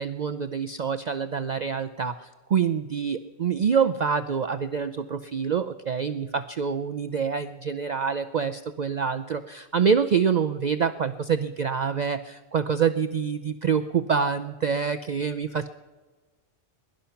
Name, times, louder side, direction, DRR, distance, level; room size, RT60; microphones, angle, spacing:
voice 1, 0.0-15.7, right 6 dB, 50° right, 9 dB, 0.5 m, -26 dB
21.5 x 11.5 x 5.8 m, 1.3 s
omnidirectional pair, 1.2 m